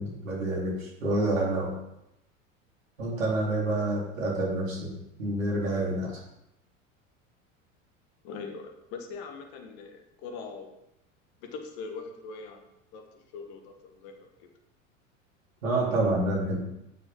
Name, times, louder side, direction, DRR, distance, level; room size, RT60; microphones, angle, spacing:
voice 1, 0.0-1.7 3.0-4.9 5.2-6.1 15.6-16.6, right 2 dB, 75° right, -3 dB, 4.0 m, -28 dB
voice 2, 8.2-10.7 11.4-12.6 12.9-14.5, left 4 dB, 50° left, 5 dB, 2.0 m, -42 dB
12.0 x 9.6 x 3.9 m, 0.84 s
figure-of-eight pair, 80°, 40 cm